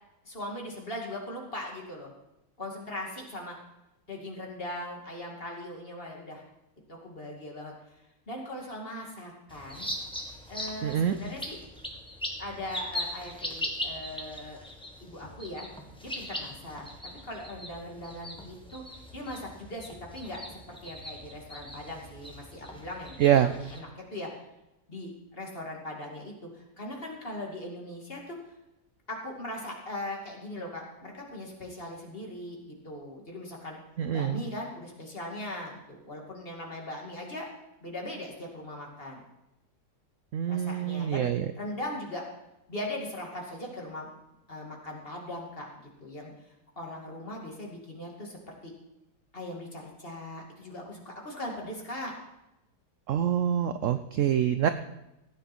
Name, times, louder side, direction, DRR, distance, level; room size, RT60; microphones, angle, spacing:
voice 1, 0.2-2.1 2.6-3.6 4.1-6.4 6.9-7.7 8.3-9.8 10.5-11.6 12.4-14.6 15.0-15.7 16.0-18.8 19.1-24.3 24.9-28.4 29.1-33.8 34.1-37.5 37.8-39.2 40.5-41.3 41.5-42.2 42.7-44.1 44.5-45.7 46.0-46.3 46.8-48.7 49.3-52.1, left 1 dB, 35° left, -1 dB, 2.6 m, -39 dB
sound 1, 9.5-23.8, left 1 dB, 5° left, 1.5 m, -40 dB
voice 2, 10.8-11.2 23.2-23.5 34.0-34.4 40.3-41.5 53.1-54.7, right 9 dB, 65° right, 10 dB, 0.8 m, -25 dB
16.0 x 9.4 x 4.4 m, 0.91 s
omnidirectional pair, 1.8 m